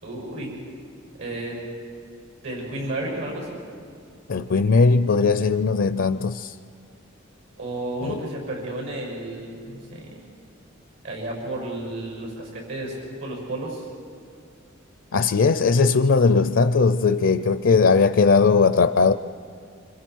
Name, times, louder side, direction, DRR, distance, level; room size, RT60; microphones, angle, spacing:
voice 1, 0.0-0.5 1.2-1.6 2.4-3.6 7.6-10.2 11.0-13.8, right 1 dB, 80° right, 0 dB, 6.4 m, -32 dB
voice 2, 4.3-6.5 8.0-8.2 15.1-19.1, left 4 dB, 65° left, 10 dB, 0.5 m, -19 dB
27.0 x 26.0 x 4.6 m, 2.2 s
head